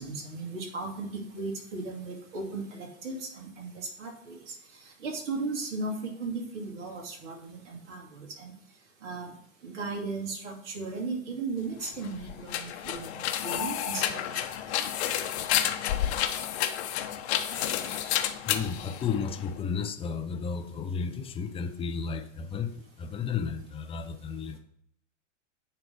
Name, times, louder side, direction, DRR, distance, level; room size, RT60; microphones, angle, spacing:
voice 1, 0.0-4.5 5.0-8.5 9.0-9.3 9.6-14.4, right 3 dB, 65° right, -1 dB, 2.5 m, -36 dB
sound 1, 11.7-19.6, left 11 dB, 60° left, 0.9 m, -30 dB
sound 2, 17.2-18.2, right 3 dB, 40° right, 2.8 m, -49 dB
voice 2, 18.4-24.6, left 6 dB, 15° left, 7 dB, 0.5 m, -33 dB
9.4 x 3.4 x 4.6 m, 0.69 s
hypercardioid pair, 105°, 38 cm